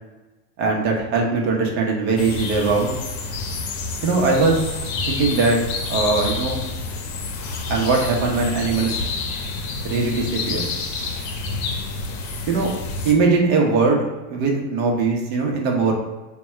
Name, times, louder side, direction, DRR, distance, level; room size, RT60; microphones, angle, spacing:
voice 1, 0.6-2.9 4.0-4.7 5.1-5.6 5.9-6.6 7.7-9.0 9.8-10.6 12.5-12.7 13.0-15.9, right 4 dB, 60° right, 0 dB, 1.1 m, -20 dB
sound 1, 2.2-13.1, left 3 dB, 50° left, 0.7 m, -28 dB
3.4 x 2.3 x 4.3 m, 1.2 s
supercardioid pair, 155°, 45 cm